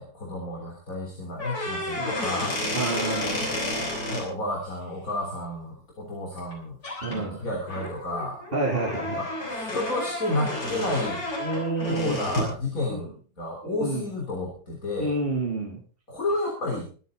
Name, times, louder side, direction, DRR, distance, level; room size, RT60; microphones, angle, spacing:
voice 1, 0.0-2.6 3.7-6.8 7.1-8.4 9.2-11.2 11.9-13.1 13.4-15.1 16.1-16.9, left 2 dB, 55° left, 0 dB, 4.0 m, -31 dB
sound 1, 1.3-4.2 6.4-6.5 6.8-7.2 7.7-12.6, left 1 dB, 75° left, 5.8 m, -31 dB
voice 2, 1.9-2.3 2.7-3.4 7.0-7.4 8.5-9.2 11.4-12.2 12.9-13.1 13.6-14.0 15.0-15.8, right 2 dB, 35° right, -2 dB, 3.2 m, -29 dB
24.5 x 9.1 x 3.8 m, 0.39 s
omnidirectional pair, 1.7 m